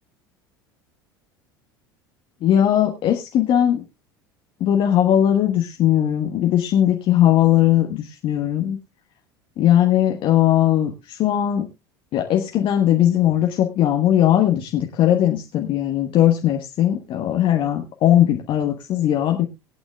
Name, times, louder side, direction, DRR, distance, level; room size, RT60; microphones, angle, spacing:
voice 1, 2.4-3.8 4.6-8.8 9.6-11.7 12.1-19.5, left 11 dB, 45° left, 3 dB, 1.3 m, -19 dB
21.0 x 8.8 x 2.3 m, 0.24 s
figure-of-eight pair, 70°, 13 cm